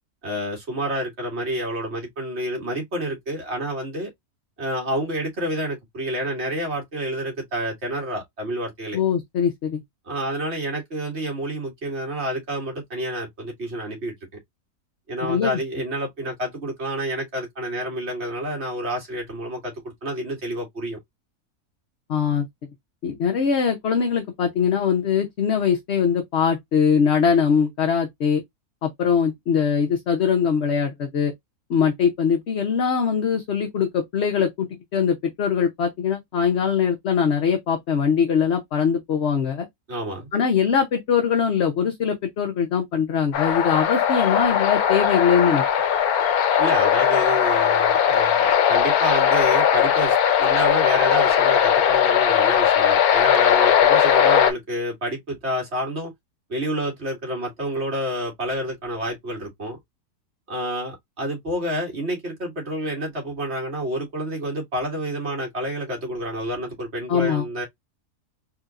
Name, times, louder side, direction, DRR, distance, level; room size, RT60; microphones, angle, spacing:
voice 1, 0.2-4.1 4.6-9.0 10.1-14.1 15.1-21.0 39.9-40.3 46.6-56.1 56.5-59.8 60.5-67.7, equal, 45° right, 2.2 m, -29 dB
voice 2, 8.9-9.8 15.2-15.6 22.1-22.5 23.0-28.4 28.8-31.3 31.7-39.7 40.3-45.6 67.1-67.4, left 7 dB, 55° left, 0.9 m, -22 dB
sound 1, 43.3-54.5, left 9 dB, 70° left, 1.2 m, -19 dB
4.3 x 2.9 x 2.4 m
omnidirectional pair, 1.7 m